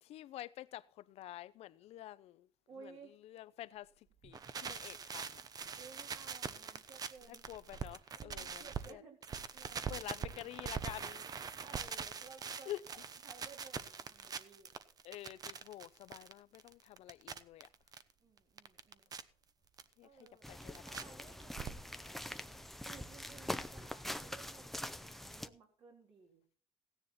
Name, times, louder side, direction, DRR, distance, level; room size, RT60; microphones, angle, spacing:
voice 1, 0.0-2.5 2.8-3.0 3.2-5.4 7.3-9.0 9.9-11.6 12.7-12.8 15.0-17.7 20.0-21.1, left 14 dB, 75° left, 0.7 m, -49 dB
voice 2, 2.7-3.2 5.8-7.4 8.2-10.5 11.6-13.0 13.2-14.7 18.2-19.2 20.0-26.4, right 4 dB, 60° right, 3.7 m, -58 dB
sound 1, 4.2-8.9 9.2-18.0 18.4-19.2 19.8-19.9 20.3-21.0 21.3-22.1 22.3-22.4 22.6-22.7 22.9-23.0, right 6 dB, 35° right, 0.9 m, -43 dB
sound 2, 20.4-25.5, left 1 dB, ahead, 0.7 m, -44 dB
16.5 x 10.0 x 4.2 m
cardioid pair, 135°, 11 cm